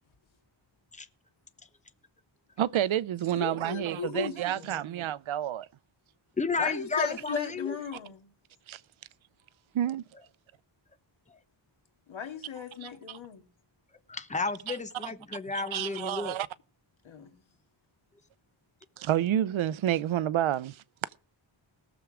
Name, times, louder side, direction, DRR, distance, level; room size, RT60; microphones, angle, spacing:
voice 1, 2.6-5.7 8.7-8.8 9.7-10.0 12.8-13.2 14.7-14.8 15.0-15.1 15.5-16.5 19.0-20.8, right 11 dB, 90° right, 0.6 m, -29 dB
voice 2, 3.3-4.9 6.6-8.3 12.1-13.5 17.0-17.4, left 7 dB, 85° left, 2.3 m, -37 dB
voice 3, 6.4-7.8 14.1-16.4, left 4 dB, 15° left, 0.8 m, -32 dB
19.0 x 7.1 x 4.8 m
wide cardioid pair, 140°, 46 cm